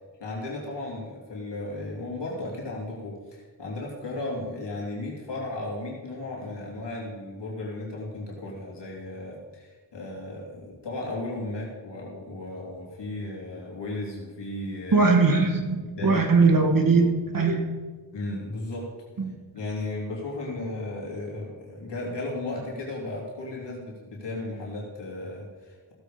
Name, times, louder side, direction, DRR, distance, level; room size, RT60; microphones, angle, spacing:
voice 1, 0.2-15.1 15.9-16.2 18.1-18.9 19.5-25.9, left 2 dB, 65° left, -3 dB, 3.3 m, -35 dB
voice 2, 14.9-17.1 17.3-17.6 19.2-19.3, right 4 dB, 45° right, 3 dB, 2.2 m, -20 dB
16.0 x 7.9 x 5.2 m, 1.4 s
cardioid pair, 85°, 45 cm